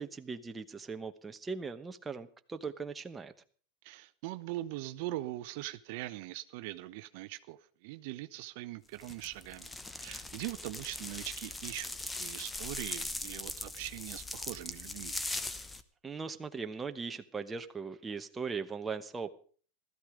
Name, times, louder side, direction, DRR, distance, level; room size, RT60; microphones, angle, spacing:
voice 1, 0.0-3.3 16.0-19.3, right 5 dB, 15° right, 8 dB, 1.0 m, -39 dB
voice 2, 3.8-9.7 10.0-15.2, right 17 dB, 60° right, 13 dB, 0.7 m, -41 dB
sound 1, 9.0-15.8, left 2 dB, 10° left, 0.9 m, -40 dB
15.5 x 13.5 x 5.0 m, 0.43 s
supercardioid pair, 125°, 0 cm